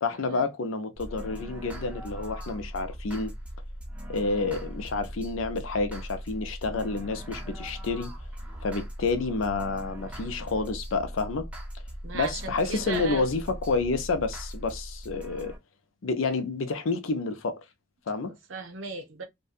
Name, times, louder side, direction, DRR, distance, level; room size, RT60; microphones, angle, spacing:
voice 1, 0.0-3.3 4.1-8.1 8.6-11.5 12.1-15.5 16.0-17.6 18.1-18.3, left 3 dB, 85° left, 0.5 m, -29 dB
sound 1, 1.0-15.6, equal, 5° right, 0.5 m, -39 dB
voice 2, 12.0-13.3 18.5-19.2, right 4 dB, 75° right, 0.7 m, -36 dB
2.6 x 2.2 x 2.4 m
head